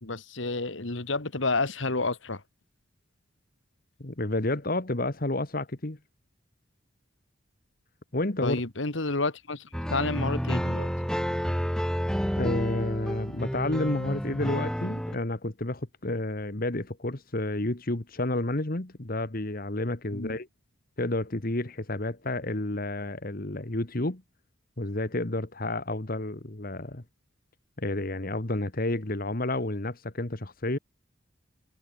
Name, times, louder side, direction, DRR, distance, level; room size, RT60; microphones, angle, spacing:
voice 1, 0.0-2.4 8.4-10.9 20.1-20.4, left 3 dB, 70° left, 2.0 m, -30 dB
voice 2, 4.0-6.0 8.1-8.6 12.4-20.5 21.0-24.2 24.8-27.0 27.8-30.8, left 2 dB, 45° left, 1.7 m, -30 dB
sound 1, 9.7-15.1, equal, 5° left, 6.5 m, -30 dB
head